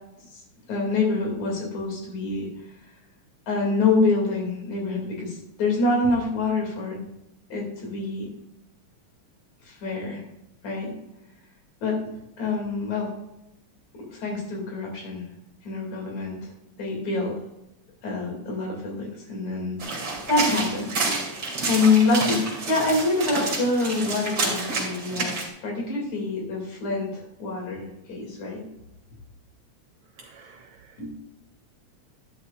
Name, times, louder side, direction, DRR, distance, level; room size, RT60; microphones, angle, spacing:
voice 1, 0.7-2.5 3.5-7.1 7.5-8.3 9.7-10.2 10.6-10.9 11.8-12.0 12.4-13.1 13.9-15.2 15.7-16.5 16.8-17.3 18.0-20.9 21.6-28.6 31.0-31.1, left 3 dB, 70° left, 0 dB, 3.7 m, -26 dB
sound 1, 19.8-25.5, right 3 dB, 40° right, 3.0 m, -29 dB
voice 2, 30.2-31.1, right 4 dB, 80° right, 5 dB, 1.3 m, -51 dB
11.0 x 11.0 x 2.4 m, 0.88 s
omnidirectional pair, 3.4 m